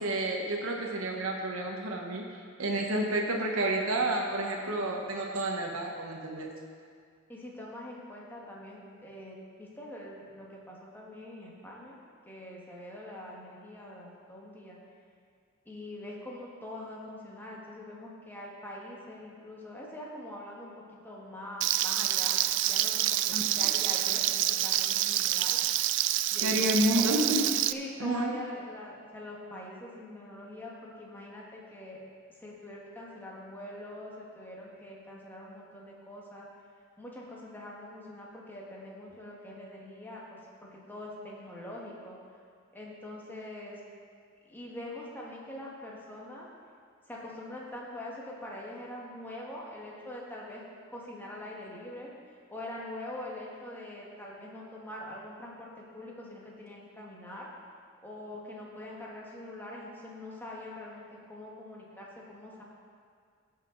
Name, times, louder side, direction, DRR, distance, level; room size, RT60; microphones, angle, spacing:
voice 1, 0.0-2.2 2.6-6.5 23.3-23.5 26.4-27.4 28.0-28.3, right 1 dB, 85° right, 0 dB, 1.0 m, -30 dB
voice 2, 7.3-12.0 12.3-14.8 15.6-20.7 21.0-22.4 22.6-25.6 26.3-27.1 27.7-32.0 32.4-36.5 37.0-42.2 42.7-43.8 44.4-46.5 47.1-50.6 50.9-52.1 52.5-57.5 58.0-62.6, left 1 dB, 10° left, -4 dB, 1.4 m, -44 dB
Frying (food), 21.6-27.7, right 13 dB, 60° right, 0.3 m, -27 dB
16.5 x 5.7 x 3.9 m, 2.1 s
head